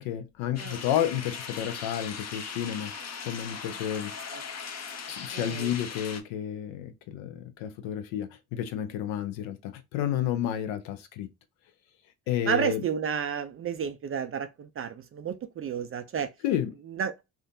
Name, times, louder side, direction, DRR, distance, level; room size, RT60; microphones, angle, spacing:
voice 1, 0.0-2.9 3.2-4.1 5.1-11.3 12.3-12.8 16.4-16.7, left 10 dB, 70° left, 0.7 m, -31 dB
sound 1, 0.6-6.2, left 6 dB, 35° left, 0.6 m, -39 dB
voice 2, 5.3-5.7 12.5-16.3 16.9-17.1, right 7 dB, 30° right, 0.4 m, -31 dB
3.5 x 2.2 x 2.5 m
hypercardioid pair, 45°, 49 cm